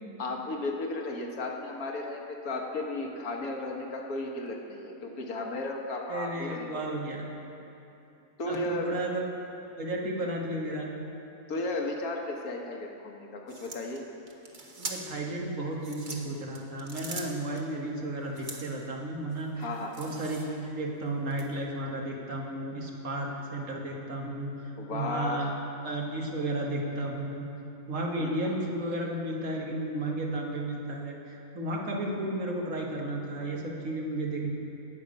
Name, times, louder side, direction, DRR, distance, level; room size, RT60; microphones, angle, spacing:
voice 1, 0.2-6.7 8.4-9.0 11.5-14.0 19.6-20.0 24.8-25.5 28.2-28.4, left 2 dB, 80° left, 1 dB, 1.7 m, -34 dB
voice 2, 6.1-7.2 8.5-9.3 9.8-10.9 14.8-19.7 20.0-25.5 25.8-27.4 27.9-34.5, right 1 dB, 65° right, -1 dB, 1.8 m, -33 dB
sound 1, 13.5-15.3 15.7-17.6 18.3-18.8 19.3-20.7 21.3-21.5, right 3 dB, 35° right, 1.2 m, -42 dB
17.5 x 6.8 x 5.2 m, 2.8 s
omnidirectional pair, 1.5 m